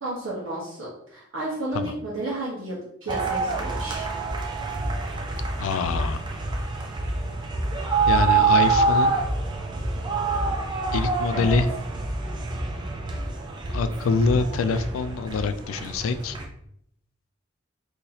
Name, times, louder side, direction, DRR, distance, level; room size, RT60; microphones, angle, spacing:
voice 1, 0.0-4.1 11.3-11.5, right 1 dB, 80° right, -7 dB, 1.1 m, -32 dB
sound 1, 3.1-16.5, right 4 dB, 20° right, 0.4 m, -26 dB
voice 2, 5.6-6.2 8.1-9.2 10.9-11.7 13.7-16.4, left 4 dB, 90° left, 11 dB, 0.3 m, -25 dB
3.9 x 2.8 x 2.8 m, 0.71 s
head